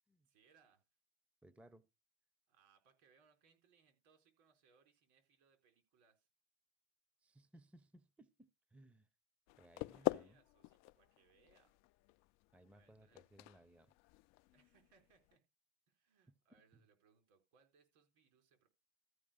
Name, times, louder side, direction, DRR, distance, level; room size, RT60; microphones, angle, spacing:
voice 1, 0.2-0.8 2.5-6.3 9.7-11.8 12.7-13.3 14.5-15.4 15.9-18.7, right 5 dB, 65° right, 4.3 m, -73 dB
voice 2, 1.4-1.9 7.2-9.1 9.6-10.4 12.5-13.9 16.3-16.4 16.7-16.8, right 1 dB, 5° right, 0.7 m, -63 dB
sound 1, 9.5-15.4, left 20 dB, 50° left, 0.5 m, -45 dB
14.0 x 5.1 x 5.2 m
hypercardioid pair, 90°, 36 cm